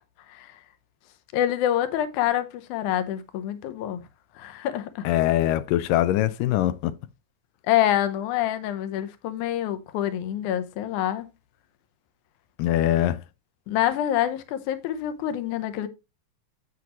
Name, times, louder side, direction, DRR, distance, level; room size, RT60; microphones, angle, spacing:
voice 1, 1.3-4.0 4.4-5.1 7.7-11.3 13.7-15.9, left 11 dB, 75° left, 2.3 m, -26 dB
voice 2, 5.0-6.9 12.6-13.2, left 13 dB, 90° left, 2.2 m, -22 dB
8.4 x 7.4 x 3.0 m
omnidirectional pair, 3.8 m